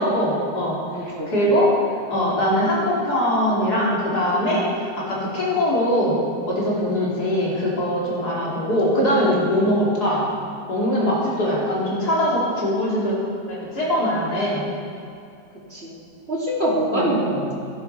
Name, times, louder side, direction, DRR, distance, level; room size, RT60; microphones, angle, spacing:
voice 1, 0.0-0.8 1.3-1.7 2.1-6.2 6.5-10.3 10.7-13.2 13.5-14.6 16.9-17.1, equal, 75° left, -6 dB, 3.6 m, -21 dB
voice 2, 0.9-1.3 7.0-7.1 15.7-15.9 16.3-17.5, right 1 dB, 40° right, -6 dB, 3.4 m, -24 dB
17.0 x 12.5 x 4.4 m, 2.5 s
omnidirectional pair, 1.7 m